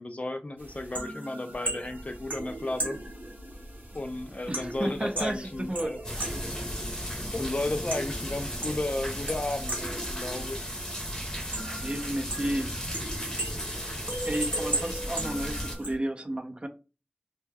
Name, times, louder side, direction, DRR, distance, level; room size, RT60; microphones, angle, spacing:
voice 1, 0.0-3.0 3.9-6.0 7.3-10.7, left 2 dB, 45° left, 0.4 m, -33 dB
sound 1, 0.6-16.0, right 1 dB, 90° right, 0.7 m, -37 dB
voice 2, 4.5-6.3 11.6-12.7 14.3-16.7, right 1 dB, 35° right, 0.4 m, -32 dB
sound 2, 6.0-15.8, equal, 20° left, 0.7 m, -35 dB
2.2 x 2.2 x 3.3 m
wide cardioid pair, 45°, 3 cm